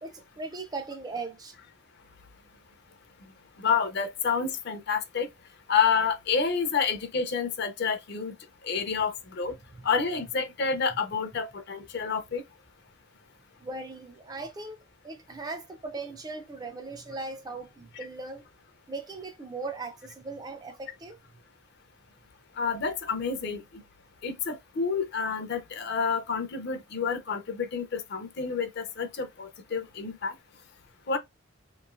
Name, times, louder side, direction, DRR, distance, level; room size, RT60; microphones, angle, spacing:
voice 1, 0.0-1.5 9.7-9.9 13.6-14.8 15.0-18.4 18.9-21.2, right 3 dB, 20° right, 0.3 m, -38 dB
voice 2, 3.6-5.3 5.7-8.3 8.6-9.5 9.8-12.4 22.6-23.6 24.2-30.3 31.1-31.2, left 5 dB, 50° left, 0.5 m, -29 dB
3.0 x 2.4 x 2.4 m
head